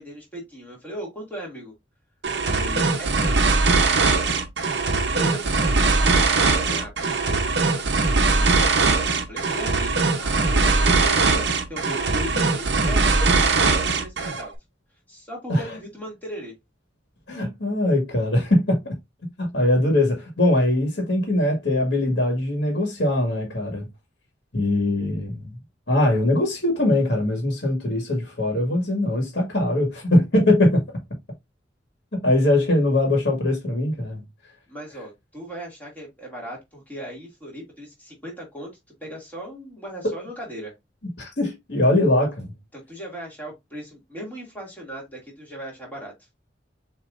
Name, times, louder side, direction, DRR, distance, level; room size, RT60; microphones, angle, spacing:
voice 1, 0.0-1.7 2.4-4.3 5.1-7.9 8.3-9.9 10.2-11.4 11.7-14.5 15.1-16.5 34.7-40.7 42.7-46.1, equal, 10° left, 2.4 m, -37 dB
sound 1, 2.2-14.5, right 3 dB, 60° right, 0.9 m, -21 dB
voice 2, 17.3-18.9 19.4-23.9 24.5-25.6 25.9-30.8 32.2-34.2 40.0-40.1 41.2-42.5, left 1 dB, 55° left, 1.8 m, -21 dB
6.8 x 3.1 x 2.5 m
head